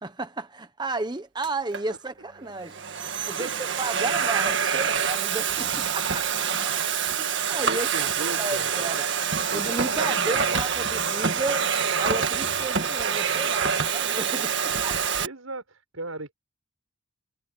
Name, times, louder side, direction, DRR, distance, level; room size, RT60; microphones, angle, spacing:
voice 1, 0.0-2.8 3.3-6.3 7.1-9.0 9.5-11.7 12.0-15.0, right 2 dB, 20° right, 1.2 m, -33 dB
Domestic sounds home sounds, 1.4-1.8 2.5-15.3, right 7 dB, 55° right, 1.8 m, -26 dB
voice 2, 3.1-3.5 7.7-8.9 9.5-10.0 10.2-10.6 15.2-16.3, right 2 dB, 75° right, 5.9 m, -38 dB
head